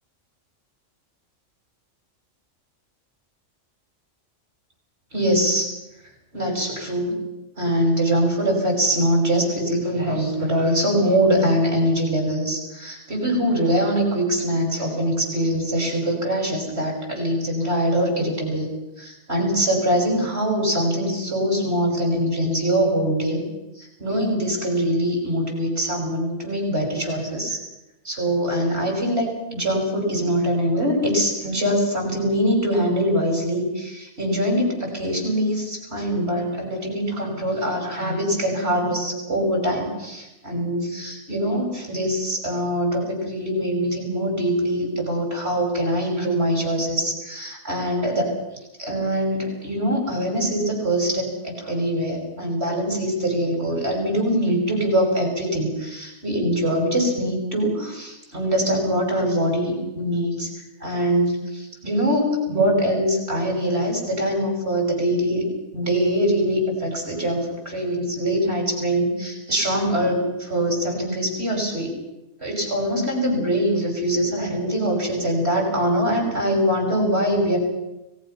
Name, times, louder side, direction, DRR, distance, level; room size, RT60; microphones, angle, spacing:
voice 1, 5.1-5.7 6.3-7.1 7.6-18.7 19.0-23.4 23.8-27.6 28.0-48.3 48.8-60.5 60.8-65.5 65.7-71.9 72.4-77.6, equal, 55° right, 1 dB, 6.7 m, -23 dB
30.0 x 19.5 x 5.8 m, 0.97 s
omnidirectional pair, 1.3 m